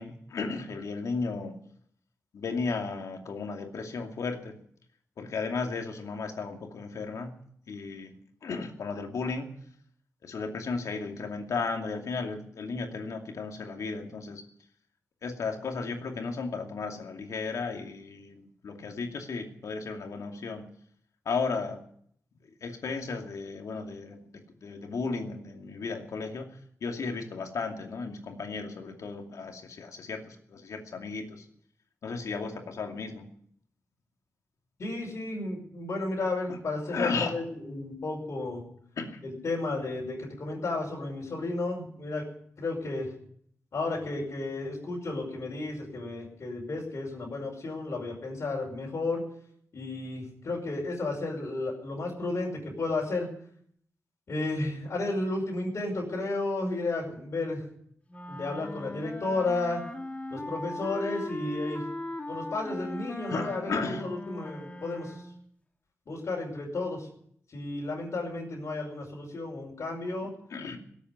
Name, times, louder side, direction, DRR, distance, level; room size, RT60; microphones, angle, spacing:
voice 1, 0.0-1.5 2.3-4.5 5.2-7.3 7.7-8.2 8.4-9.5 10.2-14.4 15.2-20.6 21.2-21.8 22.6-31.5 32.0-33.2 36.5-36.6 36.9-37.3 39.0-39.2 63.3-64.1 70.5-70.8, left 4 dB, 80° left, 4 dB, 2.5 m, -34 dB
voice 2, 34.8-38.6 39.2-42.3 42.6-43.1 43.7-49.2 49.7-53.3 54.3-57.6 58.3-59.8 60.3-61.8 62.3-65.2 66.1-67.1 67.5-70.3, left 2 dB, 60° left, -4 dB, 5.5 m, -33 dB
sound 1, 58.1-65.4, left 1 dB, 25° left, 1.8 m, -39 dB
17.5 x 8.5 x 9.5 m, 0.66 s
cardioid pair, 75°, 5 cm